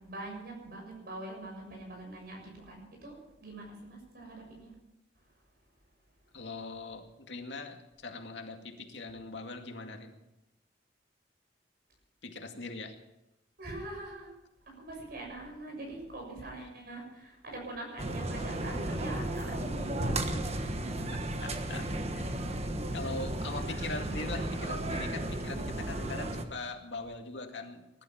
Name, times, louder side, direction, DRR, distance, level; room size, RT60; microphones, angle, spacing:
voice 1, 0.0-4.8 5.1-5.7 6.2-6.3 13.6-14.4 14.6-20.6 20.8-21.2 23.0-23.1 23.4-23.8, right 1 dB, 60° right, 0 dB, 6.7 m, -42 dB
voice 2, 6.3-10.1 12.2-12.9 21.4-22.6 22.9-28.0, left 3 dB, 85° left, 4 dB, 2.2 m, -41 dB
sound 1, 18.0-26.4, right 1 dB, 35° right, 1.4 m, -34 dB
20.0 x 12.0 x 5.8 m, 0.90 s
head